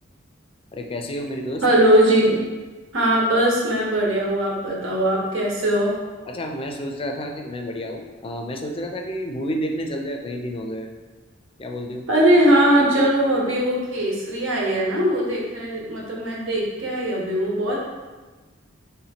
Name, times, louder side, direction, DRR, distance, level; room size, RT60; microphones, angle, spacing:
voice 1, 0.7-1.6 6.3-10.9 11.6-12.1, equal, 30° left, 3 dB, 0.4 m, -30 dB
voice 2, 1.6-2.3 2.9-6.0 12.1-17.9, right 1 dB, 85° right, -3 dB, 1.0 m, -20 dB
3.5 x 2.8 x 4.2 m, 1.3 s
head